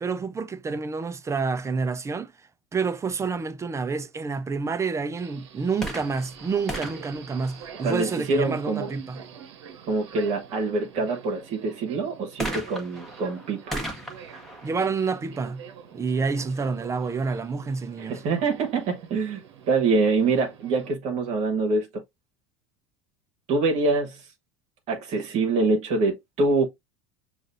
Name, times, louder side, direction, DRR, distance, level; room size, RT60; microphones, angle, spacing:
voice 1, 0.0-2.3 2.7-9.2 14.6-15.6 15.9-18.2, right 4 dB, 20° right, 0.5 m, -28 dB
Subway metro underground, 5.2-20.9, right 7 dB, 80° right, 0.9 m, -46 dB
sound 1, 5.7-8.3 12.4-16.0 16.8-16.9, equal, 5° left, 1.3 m, -37 dB
voice 2, 7.8-8.9 9.9-13.8 18.0-19.4 19.7-22.0 23.5-24.3 24.9-26.7, right 3 dB, 50° right, 1.2 m, -25 dB
6.3 x 2.5 x 2.5 m
hypercardioid pair, 90°, 15 cm